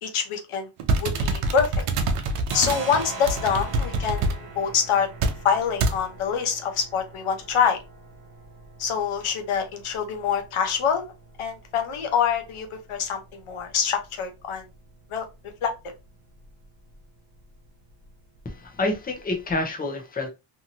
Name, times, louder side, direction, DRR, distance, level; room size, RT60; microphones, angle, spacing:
voice 1, 0.0-0.7 1.0-1.8 2.5-5.1 5.4-7.8 8.8-11.1 11.4-14.6 15.1-15.2 15.6-15.7, left 7 dB, 80° left, 5 dB, 0.9 m, -25 dB
sound 1, 0.8-4.4 5.2-5.4 5.8-6.0, right 2 dB, 85° right, 0.7 m, -25 dB
sound 2, 1.1-1.8 2.1-19.6, right 3 dB, 45° right, 1.3 m, -43 dB
voice 2, 18.4-20.3, left 2 dB, 20° left, 3 dB, 0.7 m, -28 dB
2.8 x 2.8 x 2.6 m, 0.25 s
wide cardioid pair, 135°, 50 cm